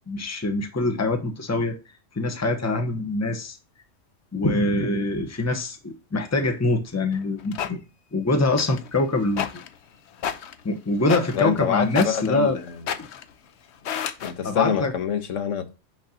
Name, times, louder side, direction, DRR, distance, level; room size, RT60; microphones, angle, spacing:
voice 1, 0.1-1.8 2.1-3.6 4.3-7.8 8.1-9.6 10.6-12.6 13.0-13.1 14.4-14.9, left 2 dB, 15° left, 0.9 m, -24 dB
sound 1, 7.1-7.7 8.6-8.9 9.3-9.8 10.1-10.6 11.0-11.6 11.9-12.4 12.7-13.3 13.8-14.3, left 8 dB, 65° left, 1.0 m, -32 dB
voice 2, 11.3-12.6 14.2-15.7, left 7 dB, 85° left, 1.4 m, -26 dB
6.5 x 6.4 x 2.8 m
omnidirectional pair, 1.3 m